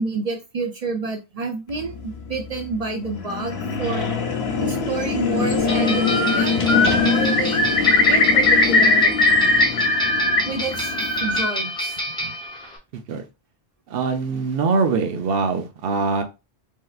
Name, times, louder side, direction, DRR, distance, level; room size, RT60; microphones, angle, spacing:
voice 1, 0.0-4.1 4.6-6.6 7.0-7.7 8.1-9.1 10.4-10.9 11.2-12.3, right 4 dB, 50° right, 4 dB, 0.4 m, -29 dB
sound 1, 1.7-11.4, left 5 dB, 80° left, 0.9 m, -25 dB
sound 2, 5.7-12.8, left 1 dB, 5° left, 0.5 m, -29 dB
Bird, 5.8-6.4 6.7-10.4 10.7-11.5, left 2 dB, 55° left, 0.6 m, -19 dB
voice 2, 12.9-13.3 13.9-16.2, right 4 dB, 70° right, 6 dB, 0.8 m, -23 dB
3.2 x 2.7 x 2.3 m, 0.27 s
omnidirectional pair, 1.0 m